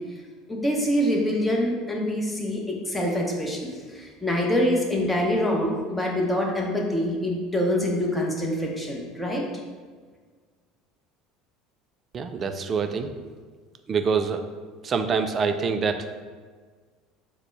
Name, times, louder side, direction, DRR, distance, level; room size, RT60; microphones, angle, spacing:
voice 1, 0.5-9.4, left 1 dB, 10° left, -1 dB, 0.8 m, -25 dB
voice 2, 12.1-13.1 13.9-14.4 14.8-16.2, right 5 dB, 35° right, 8 dB, 0.3 m, -25 dB
4.1 x 2.1 x 4.4 m, 1.5 s
figure-of-eight pair, 65°, 0 cm